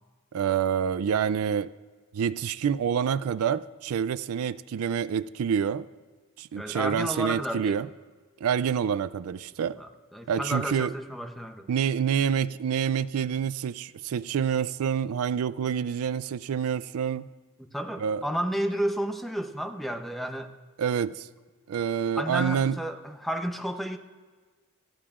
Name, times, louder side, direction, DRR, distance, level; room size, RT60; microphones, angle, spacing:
voice 1, 0.3-1.7 2.1-5.9 6.4-7.9 8.4-9.8 10.3-10.9 11.7-17.3 18.0-18.2 20.8-21.3 21.7-22.8, right 8 dB, 75° right, 17 dB, 0.4 m, -27 dB
voice 2, 6.6-7.9 9.7-11.7 17.6-20.5 22.2-24.0, right 1 dB, ahead, 6 dB, 0.7 m, -32 dB
23.0 x 14.5 x 2.4 m, 1.4 s
head